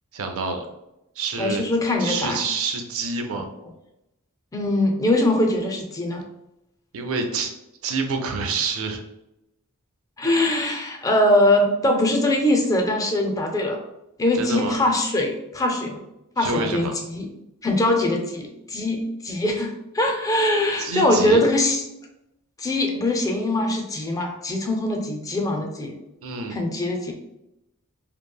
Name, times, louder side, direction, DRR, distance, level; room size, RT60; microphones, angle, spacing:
voice 1, 0.1-0.6 1.2-1.6 2.0-3.5 6.9-7.5 7.8-9.0 14.3-14.8 16.4-16.9 20.8-21.4 26.2-26.6, right 4 dB, 65° right, 5 dB, 0.5 m, -27 dB
voice 2, 1.4-2.4 4.5-6.2 10.2-13.8 14.2-16.0 16.4-17.3 17.6-21.8 22.6-25.9 26.5-27.1, left 1 dB, 15° left, 2 dB, 0.3 m, -22 dB
2.9 x 2.6 x 2.2 m, 0.87 s
head